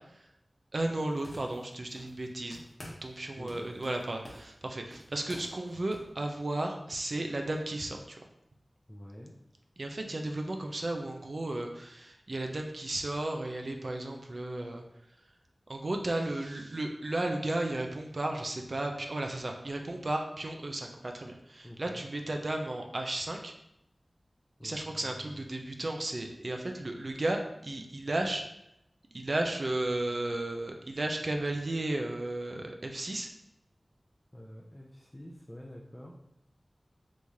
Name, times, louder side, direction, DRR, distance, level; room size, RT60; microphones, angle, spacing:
voice 1, 0.7-2.6 3.0-8.2 9.8-14.8 15.7-23.5 24.6-28.4 29.1-33.3, right 2 dB, 60° right, 3 dB, 0.5 m, -34 dB
sound 1, 1.0-2.3 2.5-3.2 3.5-6.1, left 1 dB, 70° left, 0.9 m, -50 dB
voice 2, 3.4-3.7 8.9-9.3 21.6-22.1 24.6-25.5 34.3-36.2, equal, 15° left, -2 dB, 0.5 m, -47 dB
3.5 x 3.1 x 2.7 m, 0.83 s
wide cardioid pair, 70°, 0 cm